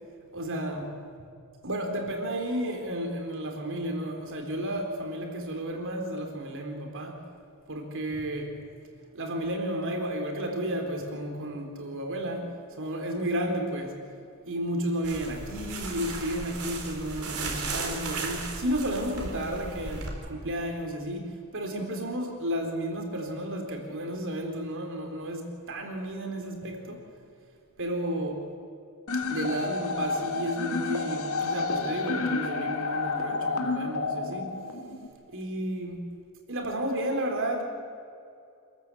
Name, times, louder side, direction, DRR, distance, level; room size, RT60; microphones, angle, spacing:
voice 1, 0.3-0.9 1.6-7.2 7.7-8.5 9.1-14.0 14.5-27.0 27.8-28.4 29.1-34.6 35.3-36.0 36.5-37.6, right 1 dB, 60° right, 3.8 m, -32 dB
sound 1, 15.0-20.1, right 3 dB, 80° right, 4.2 m, -36 dB
sound 2, 29.1-35.1, left 3 dB, 65° left, 2.1 m, -30 dB
27.0 x 14.0 x 8.4 m
head